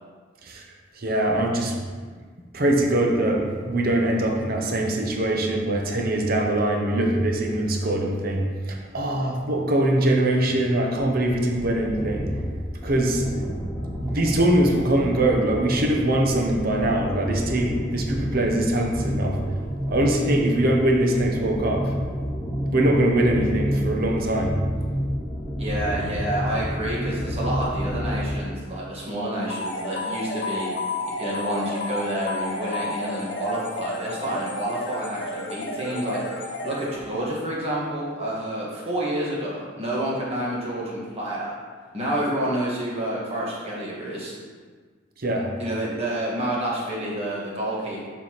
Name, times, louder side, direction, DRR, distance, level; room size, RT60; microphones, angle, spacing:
voice 1, 1.0-1.8 2.5-12.3 12.8-13.2 14.0-19.4 19.9-22.0 22.7-24.6 45.2-45.5, right 1 dB, 50° right, 1 dB, 0.9 m, -22 dB
sound 1, 11.2-28.4, equal, ahead, 1.2 m, -30 dB
voice 2, 25.6-30.8 31.2-41.5 41.9-44.3 45.6-48.1, right 1 dB, 35° right, -6 dB, 1.7 m, -29 dB
sound 2, 29.5-37.3, left 2 dB, 65° left, 0.9 m, -31 dB
6.6 x 5.6 x 3.1 m, 1.5 s
head